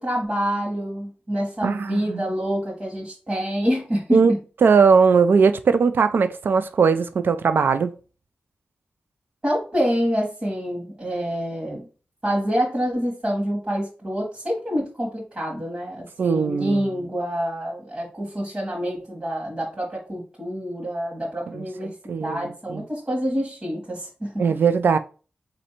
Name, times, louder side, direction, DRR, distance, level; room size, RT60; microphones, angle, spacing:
voice 1, 0.0-4.2 9.4-11.9 12.2-24.4, equal, 30° right, 1.3 m, -27 dB
voice 2, 1.6-2.2 4.1-4.3 4.6-7.9 16.2-16.9 21.5-21.6 22.1-22.8 24.4-25.0, right 5 dB, 80° right, 0.3 m, -19 dB
4.2 x 2.6 x 4.2 m
wide cardioid pair, 100°, 4 cm